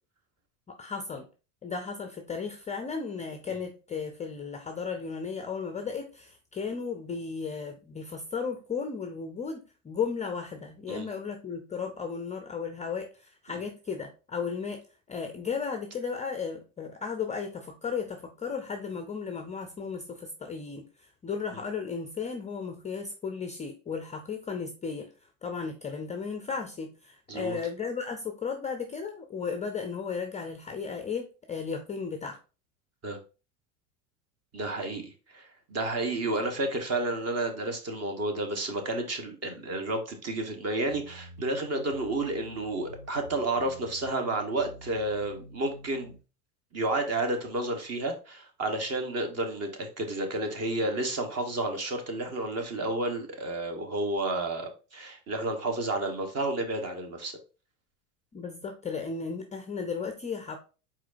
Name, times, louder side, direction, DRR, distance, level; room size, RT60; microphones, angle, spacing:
voice 1, 0.7-1.3 1.6-14.8 15.1-32.4 58.3-60.6, left 5 dB, 15° left, 6 dB, 0.5 m, -35 dB
voice 2, 34.5-46.1 46.7-57.4, right 2 dB, 30° right, 5 dB, 1.3 m, -31 dB
sound 1, 40.9-46.2, equal, 70° right, 2.2 m, -48 dB
4.7 x 4.2 x 2.6 m, 0.33 s
hypercardioid pair, 105°, 47 cm